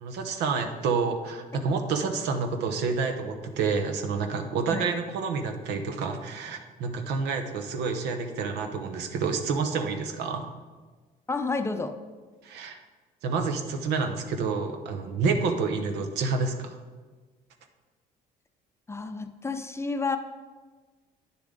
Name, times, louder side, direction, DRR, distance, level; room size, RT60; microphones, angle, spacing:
voice 1, 0.0-10.5 12.4-12.8 13.2-16.8, right 4 dB, 85° right, 6 dB, 0.9 m, -29 dB
voice 2, 11.3-12.0 18.9-20.2, left 3 dB, 15° left, 7 dB, 0.5 m, -30 dB
9.5 x 7.0 x 3.9 m, 1.4 s
cardioid pair, 110°, 17 cm